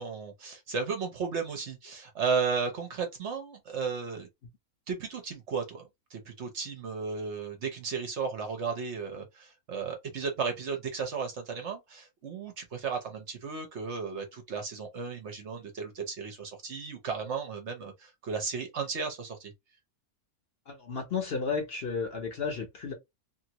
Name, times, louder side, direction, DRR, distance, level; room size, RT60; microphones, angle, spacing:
voice 1, 0.0-4.3 4.9-19.5, right 5 dB, 55° right, 0.9 m, -34 dB
voice 2, 20.7-22.9, left 5 dB, 50° left, 0.8 m, -33 dB
2.9 x 2.5 x 2.8 m
omnidirectional pair, 1.5 m